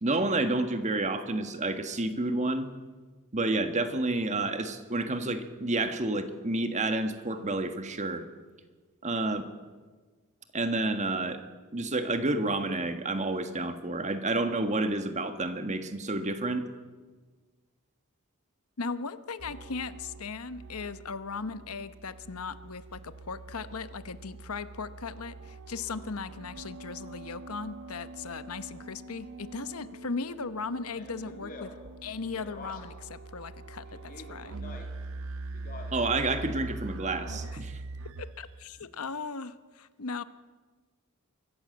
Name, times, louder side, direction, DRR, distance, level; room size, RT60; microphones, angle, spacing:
voice 1, 0.0-2.7 3.3-8.2 9.0-9.5 10.5-11.4 11.7-16.6 35.9-37.8, right 2 dB, 35° right, 8 dB, 1.6 m, -29 dB
voice 2, 18.8-31.7 32.0-34.6 38.2-40.2, left 4 dB, 80° left, 13 dB, 1.0 m, -38 dB
sound 1, 19.4-38.8, right 3 dB, 65° right, 0.6 m, -43 dB
Speech, 30.9-33.1 33.9-35.1 35.5-36.6 37.0-37.7, left 3 dB, 40° left, 2.6 m, -47 dB
23.5 x 15.0 x 7.9 m, 1.4 s
head